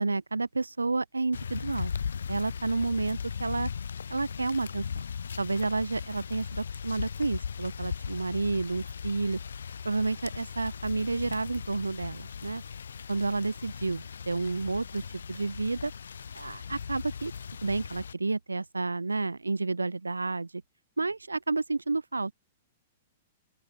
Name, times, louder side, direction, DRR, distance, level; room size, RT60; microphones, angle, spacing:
voice 1, 0.0-1.9 2.3-3.7 4.1-4.8 5.4-9.4 9.8-12.6 13.1-15.0 15.3-15.9 16.3-17.3 17.6-20.5 21.0-22.3, right 3 dB, 90° right, 2.3 m, -30 dB
sound 1, 1.3-18.1, left 6 dB, 75° left, 1.6 m, -38 dB
open air
figure-of-eight pair, 110°, 0 cm